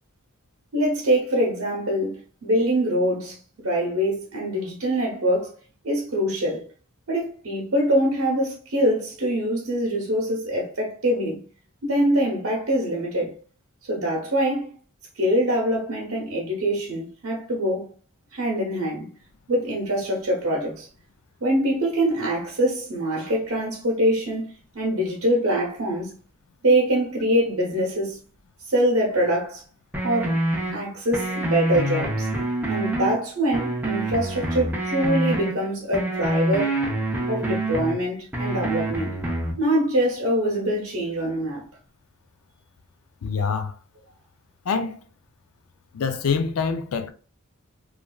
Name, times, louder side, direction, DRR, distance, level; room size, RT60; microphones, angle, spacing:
voice 1, 0.7-3.4 3.6-5.5 5.8-6.7 7.1-11.4 11.8-13.3 13.9-14.7 15.2-17.9 18.3-19.1 19.5-20.9 21.4-26.1 26.6-28.2 28.6-29.6 30.0-30.4 30.7-32.3 32.7-36.8 37.3-39.1 39.6-41.7, equal, 75° right, 0.8 m, -24 dB
sound 1, 29.9-30.7 31.1-33.1 33.5-35.5 35.9-37.9 38.3-39.5, right 1 dB, 10° right, 0.5 m, -26 dB
voice 2, 43.2-43.7 44.7-45.0 45.9-47.1, left 5 dB, 80° left, 0.4 m, -25 dB
3.1 x 2.4 x 2.2 m
head